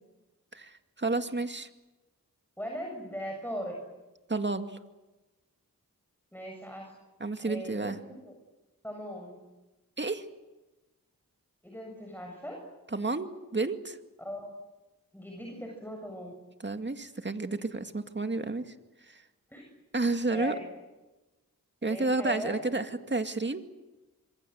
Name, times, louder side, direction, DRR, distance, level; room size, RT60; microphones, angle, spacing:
voice 1, 0.5-1.7 4.3-4.8 7.2-8.0 10.0-10.3 12.9-14.0 16.6-18.7 19.1-19.2 19.9-20.5 21.8-23.6, right 3 dB, 35° right, 7 dB, 2.3 m, -31 dB
voice 2, 2.6-3.8 6.3-6.9 7.4-7.9 8.2-8.3 8.8-9.4 11.6-12.6 14.2-14.5 15.1-16.3 19.5-19.6 20.3-20.6 21.8-22.6 22.8-23.0, equal, 5° left, 1 dB, 7.5 m, -39 dB
26.5 x 23.5 x 8.0 m, 1.1 s
cardioid pair, 50°, 34 cm